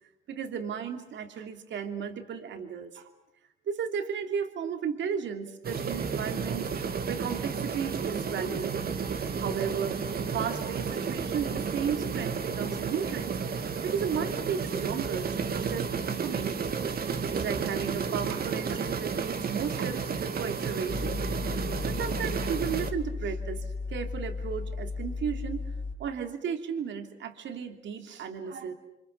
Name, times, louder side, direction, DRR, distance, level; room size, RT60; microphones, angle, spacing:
voice 1, 0.3-3.1 3.7-6.7 7.1-8.7 9.4-13.4 13.8-16.7 17.3-21.1 21.9-23.6 23.9-25.7 26.0-28.7, right 7 dB, 70° right, 5 dB, 2.9 m, -34 dB
sound 1, 5.6-22.9, right 6 dB, 50° right, 2.1 m, -32 dB
sound 2, 20.9-25.9, left 3 dB, 40° left, 3.4 m, -35 dB
30.0 x 25.5 x 6.8 m, 0.89 s
cardioid pair, 90°, 20 cm